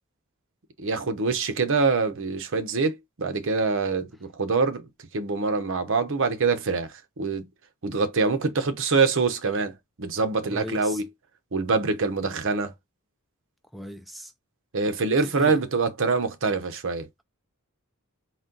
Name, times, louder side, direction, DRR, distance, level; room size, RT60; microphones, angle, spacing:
voice 1, 0.8-4.8 5.1-7.5 7.8-11.1 11.5-12.7 14.7-17.1, right 4 dB, 60° right, 0.8 m, -25 dB
voice 2, 10.5-11.0 13.7-14.3 15.2-15.6, equal, ahead, 0.3 m, -38 dB
4.2 x 2.2 x 3.8 m
head